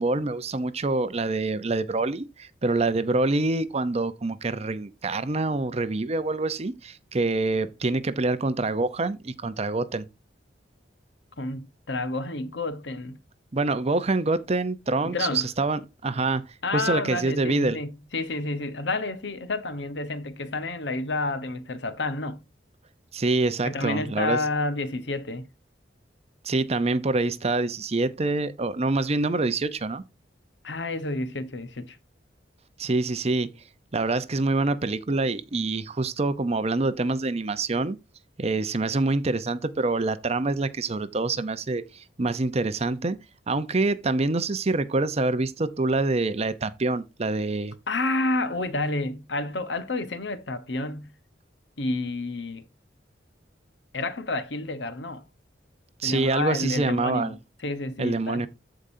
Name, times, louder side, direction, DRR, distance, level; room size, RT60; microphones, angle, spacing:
voice 1, 0.0-10.0 13.5-16.5 16.7-17.8 23.1-24.4 26.4-30.0 32.8-33.5 33.9-38.0 38.4-43.2 43.5-47.7 56.0-57.4 58.0-58.5, right 3 dB, 35° right, 0.7 m, -26 dB
voice 2, 11.4-13.2 15.0-15.5 16.6-22.4 23.6-25.5 30.6-32.0 47.9-51.1 51.8-52.6 53.9-55.2 56.0-57.4 57.6-58.5, left 2 dB, 70° left, 1.0 m, -30 dB
14.5 x 5.0 x 2.7 m
head